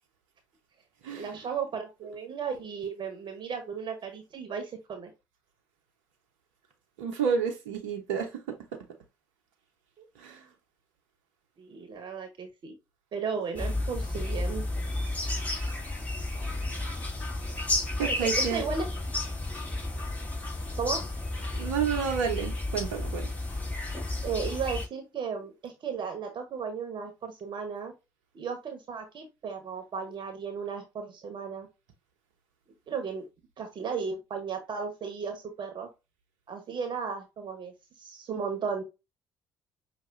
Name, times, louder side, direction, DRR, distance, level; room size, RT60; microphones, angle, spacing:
voice 1, 1.1-5.1 10.0-10.4 11.6-12.7 13.1-14.6 18.2-18.9 20.8-21.0 24.2-27.9 28.3-31.7 32.9-33.2 33.6-35.9 36.5-38.8, right 6 dB, 50° right, 1.2 m, -35 dB
voice 2, 7.0-8.8 10.2-10.4 18.0-18.7 21.5-23.3, right 6 dB, 80° right, 0.9 m, -30 dB
sound 1, 13.5-24.9, left 2 dB, 15° left, 2.5 m, -32 dB
5.8 x 2.8 x 2.5 m
hypercardioid pair, 55°, 10 cm